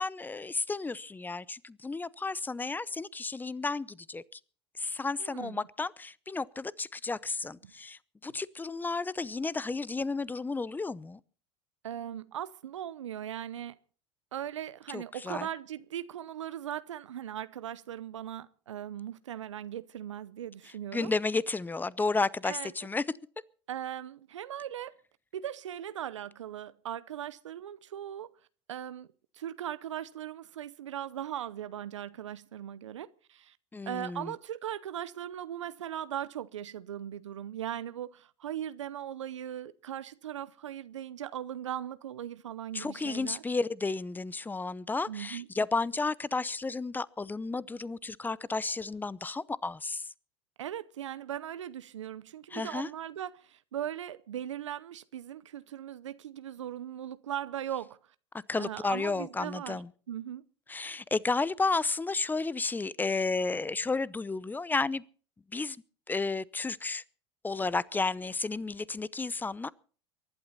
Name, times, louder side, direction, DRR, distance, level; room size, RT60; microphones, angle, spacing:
voice 1, 0.0-4.4 4.8-11.2 14.9-15.5 20.9-23.0 33.7-34.3 42.7-50.1 52.5-52.9 58.5-59.9 60.7-65.0 65.5-65.8 66.1-67.0 67.4-69.7, left 3 dB, 10° left, 0.7 m, -32 dB
voice 2, 5.2-5.6 7.6-7.7 11.8-13.8 14.3-21.1 22.4-22.7 23.7-24.9 25.3-28.3 28.7-33.6 33.9-43.4 45.1-45.5 50.6-58.0 58.6-59.8 60.1-60.4, right 10 dB, 85° right, 0.7 m, -39 dB
23.5 x 11.5 x 4.2 m
hypercardioid pair, 90°, 15 cm